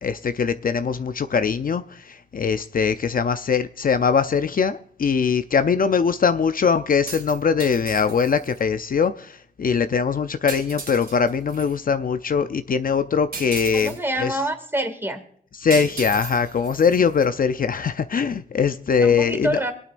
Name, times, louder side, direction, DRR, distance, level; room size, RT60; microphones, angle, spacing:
voice 1, 0.0-14.4 15.6-19.6, left 6 dB, 55° left, 0.5 m, -22 dB
sound 1, 6.9-8.6 10.5-11.7 13.3-14.0 15.7-17.3, right 4 dB, 60° right, 2.6 m, -36 dB
voice 2, 13.7-15.2 19.0-19.7, right 1 dB, 15° right, 2.2 m, -26 dB
26.0 x 9.1 x 2.5 m
wide cardioid pair, 110°, 17 cm